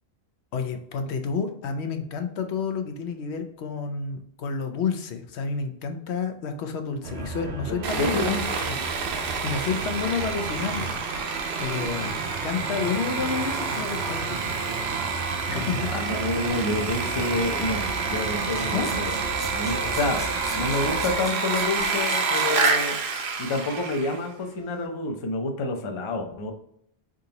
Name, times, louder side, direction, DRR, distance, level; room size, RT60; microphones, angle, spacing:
voice 1, 0.5-8.2 8.7-8.8 9.2-11.3 11.6-14.5 15.5-15.9 18.6-19.0, left 5 dB, 85° left, 6 dB, 0.9 m, -30 dB
sound 1, 7.0-21.3, right 5 dB, 85° right, 0.9 m, -34 dB
voice 2, 7.7-8.4 15.9-19.1 19.5-20.3 20.5-23.0 23.4-26.5, left 2 dB, 35° left, 4 dB, 0.5 m, -28 dB
Sawing, 7.8-24.3, right 4 dB, 60° right, 0.7 m, -29 dB
sound 2, 18.5-22.8, equal, 5° left, 0.8 m, -39 dB
3.8 x 3.8 x 2.8 m, 0.70 s
omnidirectional pair, 1.1 m